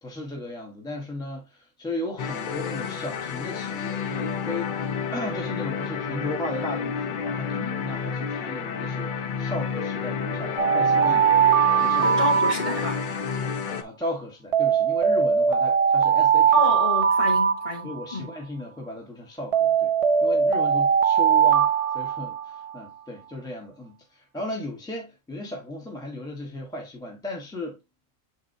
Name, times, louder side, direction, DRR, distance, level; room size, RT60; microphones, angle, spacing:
voice 1, 0.0-12.2 13.6-16.5 17.8-19.9 20.2-27.8, left 1 dB, 5° left, 1.3 m, -36 dB
sound 1, 2.2-13.8, left 6 dB, 50° left, 0.6 m, -30 dB
Alarm, 10.6-13.2 14.5-18.2 19.5-22.7, right 7 dB, 65° right, 0.3 m, -21 dB
voice 2, 12.0-13.0 16.5-18.4, left 2 dB, 35° left, 2.1 m, -29 dB
7.3 x 4.8 x 2.7 m
omnidirectional pair, 1.4 m